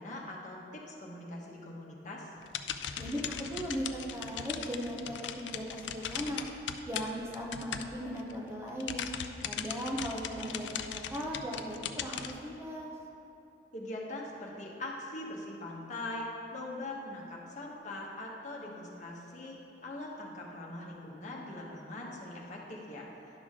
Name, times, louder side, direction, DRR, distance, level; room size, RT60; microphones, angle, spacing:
voice 1, 0.0-2.3 13.7-19.6 19.8-23.1, left 2 dB, 45° left, -3 dB, 1.2 m, -42 dB
sound 1, 2.4-8.4 8.7-12.3, left 8 dB, 90° left, 0.4 m, -39 dB
voice 2, 3.0-6.5 6.9-9.1 9.4-12.9, equal, 15° right, -2 dB, 0.8 m, -38 dB
10.5 x 6.1 x 3.7 m, 2.8 s
head